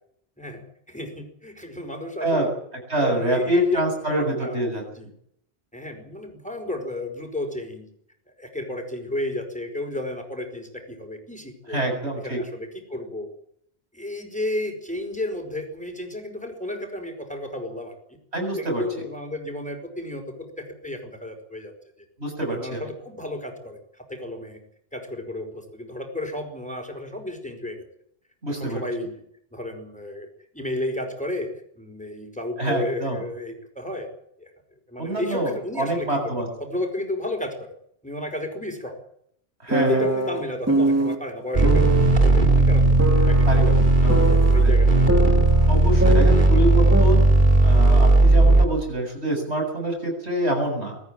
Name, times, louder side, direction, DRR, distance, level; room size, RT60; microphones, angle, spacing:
voice 1, 0.4-2.5 3.0-4.7 4.9-5.1 5.7-7.9 8.4-11.8 12.2-13.3 13.9-18.0 18.6-21.7 22.4-24.6 24.9-27.8 28.5-29.2 29.5-34.1 34.4-34.5 34.9-37.7 38.0-39.0 39.7-43.6 44.1-46.8, left 1 dB, 5° left, 4 dB, 5.1 m, -33 dB
voice 2, 2.9-4.8 11.7-12.4 18.3-18.8 22.2-22.9 28.4-28.8 32.6-33.2 35.0-36.5 39.6-40.1 43.5-43.7 44.0-44.2 44.6-44.7 45.7-47.3 47.6-51.0, right 1 dB, 85° right, 3 dB, 7.7 m, -26 dB
sound 1, 39.7-41.2 41.6-42.1 43.0-44.6 45.1-46.7 46.9-47.1, right 1 dB, 15° right, 2.0 m, -24 dB
sound 2, 41.5-48.7, right 2 dB, 50° right, 2.7 m, -16 dB
23.0 x 14.5 x 9.1 m, 0.70 s
omnidirectional pair, 1.1 m